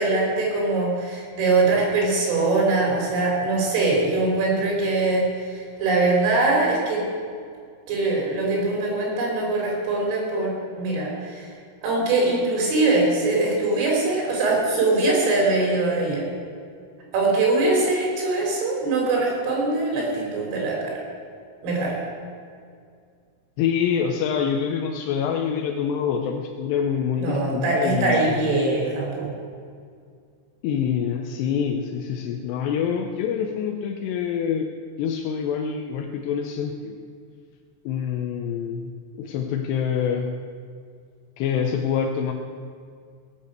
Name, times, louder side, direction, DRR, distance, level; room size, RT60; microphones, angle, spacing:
voice 1, 0.0-7.0 7.9-11.5 11.8-16.3 17.1-20.9 21.6-22.0 27.2-29.3, right 2 dB, 85° right, -2 dB, 6.4 m, -22 dB
voice 2, 23.6-28.6 30.6-34.7 35.0-37.0 37.9-40.3 41.4-42.3, left 7 dB, 80° left, 3 dB, 2.5 m, -26 dB
18.0 x 8.4 x 8.1 m, 2.2 s
omnidirectional pair, 5.7 m